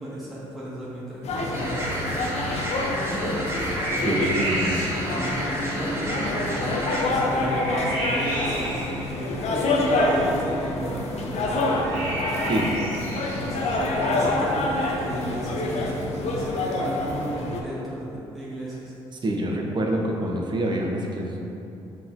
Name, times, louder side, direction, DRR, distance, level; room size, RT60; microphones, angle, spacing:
voice 1, 0.0-2.4 3.0-4.3 4.9-11.9 13.2-18.9, right 1 dB, ahead, -8 dB, 0.8 m, -35 dB
sound 1, 1.2-17.6, left 2 dB, 60° left, 0.5 m, -27 dB
sound 2, 1.5-7.0, equal, 20° right, 1.0 m, -31 dB
sound 3, 2.0-15.9, right 1 dB, 85° right, 0.8 m, -35 dB
voice 2, 4.0-4.8 12.5-12.8 19.2-21.4, right 1 dB, 40° right, 0 dB, 0.7 m, -26 dB
5.4 x 3.0 x 2.6 m, 2.9 s
supercardioid pair, 50°, 12 cm